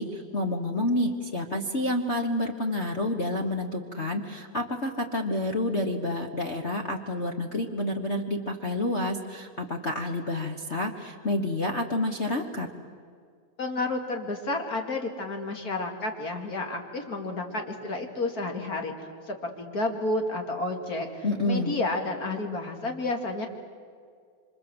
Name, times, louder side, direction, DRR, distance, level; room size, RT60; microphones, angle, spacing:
voice 1, 0.0-12.7 21.2-21.8, left 1 dB, 80° left, 1 dB, 0.6 m, -29 dB
voice 2, 13.6-23.5, left 2 dB, 35° left, 3 dB, 2.4 m, -31 dB
27.0 x 25.5 x 7.9 m, 2.1 s
omnidirectional pair, 3.4 m